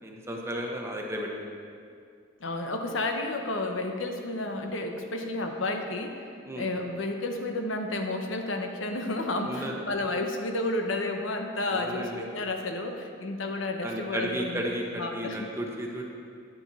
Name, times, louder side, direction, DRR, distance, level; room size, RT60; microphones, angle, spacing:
voice 1, 0.0-1.3 6.5-6.7 9.4-9.7 11.7-12.2 13.8-16.0, equal, 15° right, 0 dB, 1.0 m, -33 dB
voice 2, 2.4-6.3 6.6-15.5, left 2 dB, 75° left, 4 dB, 0.9 m, -31 dB
9.6 x 8.9 x 4.1 m, 2.3 s
head